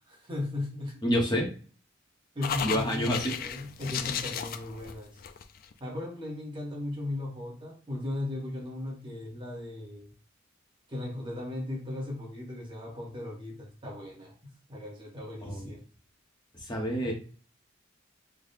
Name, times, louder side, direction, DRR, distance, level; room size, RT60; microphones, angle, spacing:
voice 1, 0.1-1.0 2.3-5.2 5.8-10.1 10.9-15.8, left 1 dB, 25° right, 1.0 m, -37 dB
voice 2, 1.0-1.5 2.6-3.3 15.4-15.7 16.5-17.1, equal, 20° left, 0.9 m, -28 dB
sound 1, 2.4-5.7, left 8 dB, 45° left, 0.3 m, -35 dB
3.3 x 2.2 x 4.0 m
head